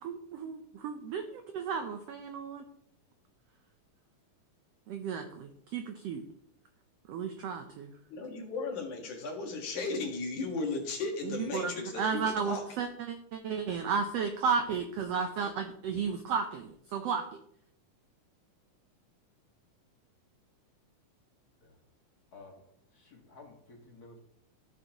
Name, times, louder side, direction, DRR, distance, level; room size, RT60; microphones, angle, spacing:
voice 1, 0.0-2.6 4.9-6.2 7.1-7.9 11.3-17.2, right 6 dB, 85° right, 6 dB, 1.4 m, -33 dB
voice 2, 8.1-12.6, left 3 dB, 65° left, 1 dB, 3.0 m, -35 dB
voice 3, 22.3-22.6 22.9-24.2, left 3 dB, 35° left, 0 dB, 1.7 m, -53 dB
13.5 x 6.8 x 2.9 m, 0.70 s
omnidirectional pair, 3.7 m